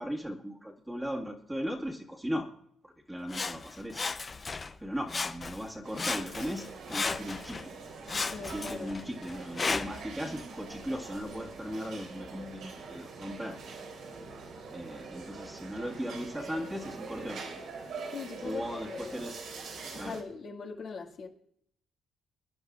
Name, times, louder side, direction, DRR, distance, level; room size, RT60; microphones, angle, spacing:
voice 1, 0.0-2.5 2.8-4.1 4.8-7.7 8.4-13.6 14.7-17.6 18.4-19.4 19.9-20.2, equal, 5° right, 1.7 m, -38 dB
Sawing, 3.3-4.8 5.1-5.7 6.0-7.7 8.1-10.1 10.7-10.8, left 4 dB, 30° left, 0.6 m, -35 dB
sound 1, 5.8-20.2, right 4 dB, 80° right, 3.1 m, -44 dB
voice 2, 8.3-8.9 18.1-19.2 19.9-21.3, left 5 dB, 60° left, 1.9 m, -40 dB
23.0 x 10.0 x 2.4 m
cardioid pair, 90°, 0 cm